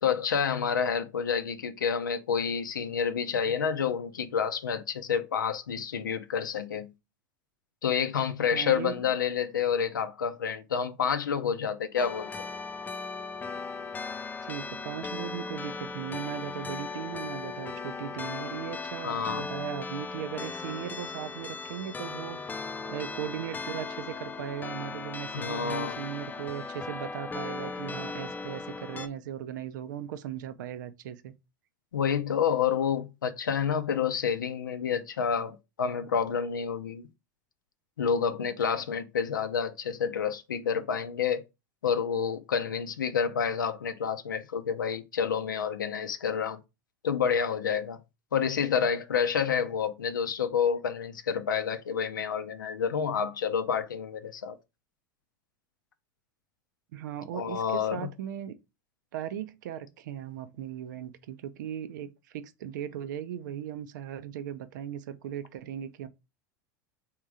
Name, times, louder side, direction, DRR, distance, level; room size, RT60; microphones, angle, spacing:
voice 1, 0.0-6.9 7.8-12.5 19.0-19.5 25.3-26.0 31.9-37.1 38.0-41.4 41.8-46.6 47.0-48.0 48.3-54.6 57.3-58.1, left 7 dB, 90° left, 0.5 m, -29 dB
voice 2, 8.5-9.1 14.4-31.3 56.9-58.5 59.1-66.1, right 10 dB, 75° right, 0.5 m, -38 dB
sound 1, 12.0-29.1, left 4 dB, 15° left, 0.5 m, -38 dB
3.6 x 2.9 x 4.8 m
hypercardioid pair, 95°, 10 cm